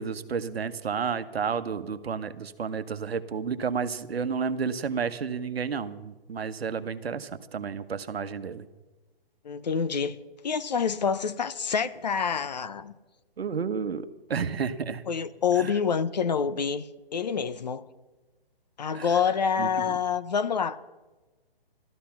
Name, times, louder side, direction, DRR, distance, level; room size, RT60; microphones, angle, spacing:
voice 1, 0.0-8.6 13.4-14.0 14.3-15.0 15.6-15.7 18.9-19.2 19.6-19.7, right 6 dB, 80° right, 1.1 m, -31 dB
voice 2, 9.4-12.9 15.1-17.8 18.8-20.8, left 6 dB, 45° left, 0.7 m, -27 dB
14.5 x 13.5 x 5.8 m
hypercardioid pair, 170°, 30 cm